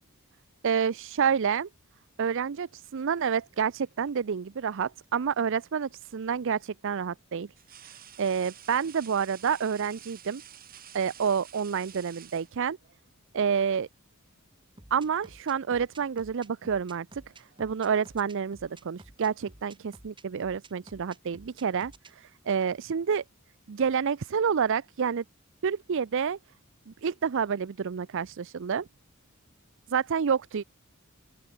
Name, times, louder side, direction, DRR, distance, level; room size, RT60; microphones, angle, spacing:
voice 1, 0.6-1.7 2.2-7.5 8.2-10.4 10.9-12.8 13.3-13.9 14.9-17.2 17.6-23.2 23.7-25.2 25.6-26.4 26.9-28.9 29.9-30.6, right 6 dB, 60° right, 0.5 m, -28 dB
sound 1, 3.3-4.1 5.9-6.0 7.6-13.0 14.2-14.4 14.8-15.6 15.8-16.2 17.1-19.7, right 10 dB, 45° right, 2.5 m, -52 dB
sound 2, 14.8-22.1, right 2 dB, 25° right, 3.3 m, -51 dB
open air
head